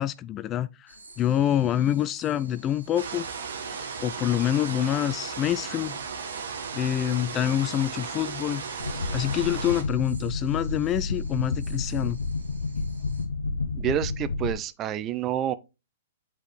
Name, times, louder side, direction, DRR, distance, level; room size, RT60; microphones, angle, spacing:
voice 1, 0.0-3.3 4.0-6.0 6.7-8.6 8.9-12.2, left 11 dB, 25° left, 0.3 m, -26 dB
sound 1, 0.9-13.3, right 2 dB, 85° right, 1.9 m, -53 dB
sound 2, 3.0-9.8, right 6 dB, 65° right, 1.4 m, -35 dB
sound 3, 8.8-14.5, left 3 dB, 75° left, 0.7 m, -30 dB
voice 2, 13.7-15.5, right 10 dB, 25° right, 0.5 m, -28 dB
8.1 x 4.5 x 3.1 m
figure-of-eight pair, 115°, 0 cm